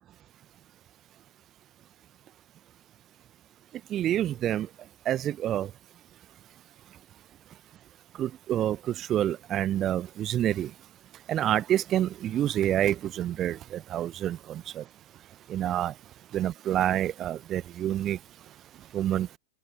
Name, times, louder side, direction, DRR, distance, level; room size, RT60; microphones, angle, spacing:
voice 1, 3.9-4.7 5.0-5.7 8.2-10.7 11.3-14.8 15.5-15.9 16.3-18.2 18.9-19.3, right 12 dB, 30° right, 1.2 m, -27 dB
figure-of-eight pair, 90°, 0 cm